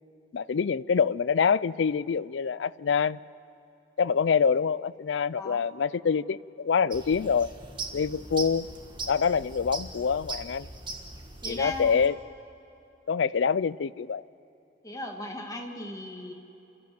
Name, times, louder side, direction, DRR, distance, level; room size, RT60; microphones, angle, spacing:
voice 1, 0.3-3.2 4.0-7.5 7.9-8.7 9.1-10.7 11.5-12.1 13.1-14.2, left 6 dB, 70° left, 19 dB, 0.4 m, -25 dB
voice 2, 5.4-5.7 11.4-12.0 14.8-16.3, left 1 dB, 20° left, 2 dB, 2.0 m, -37 dB
sound 1, 6.9-12.1, right 3 dB, 25° right, 1.6 m, -40 dB
29.0 x 14.0 x 7.9 m, 3.0 s
head